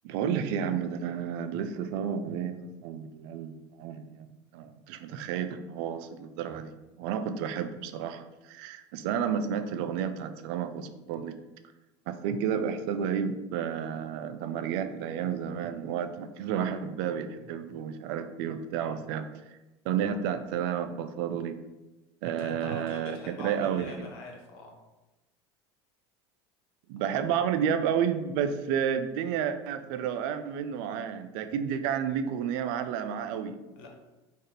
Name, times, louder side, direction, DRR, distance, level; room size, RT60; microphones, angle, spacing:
voice 1, 0.0-2.6 2.8-4.3 4.5-6.7 7.0-11.3 12.1-19.6 19.9-21.6 22.2-24.1 26.9-33.6, right 8 dB, 65° right, 10 dB, 0.4 m, -31 dB
voice 2, 18.5-19.1 22.2-24.8 27.0-27.3 33.8-33.9, left 3 dB, 70° left, 1 dB, 0.9 m, -45 dB
4.1 x 2.5 x 3.3 m, 1.0 s
hypercardioid pair, 85°, 14 cm